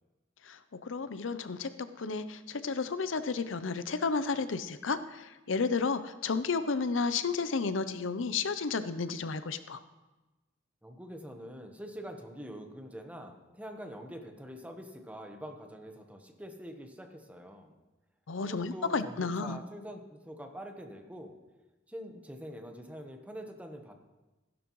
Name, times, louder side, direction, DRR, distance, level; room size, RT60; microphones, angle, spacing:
voice 1, 0.5-1.7 2.0-9.8 18.3-19.6, left 4 dB, 90° left, 12 dB, 0.6 m, -32 dB
voice 2, 10.8-17.7 18.4-21.3 21.9-23.9, equal, 10° right, 4 dB, 1.1 m, -45 dB
15.5 x 11.5 x 3.1 m, 1.1 s
head